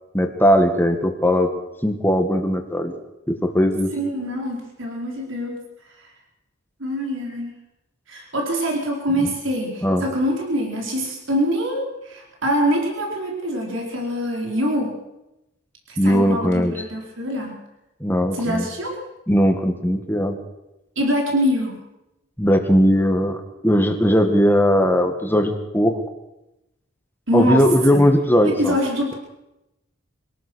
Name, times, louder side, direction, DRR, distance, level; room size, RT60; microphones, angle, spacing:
voice 1, 0.1-1.5 1.8-2.9 3.3-3.9 9.2-9.3 9.8-10.0 16.0-16.7 18.0-18.7 19.3-20.4 22.4-26.0 27.3-28.8, equal, 10° left, 5 dB, 1.8 m, -18 dB
voice 2, 3.9-5.6 6.0-6.1 6.8-7.5 8.1-14.9 15.9-17.6 18.3-19.0 21.0-21.8 27.3-27.6 27.9-28.0 28.4-29.2, equal, 75° right, 0 dB, 4.5 m, -24 dB
24.0 x 18.0 x 6.4 m, 0.92 s
head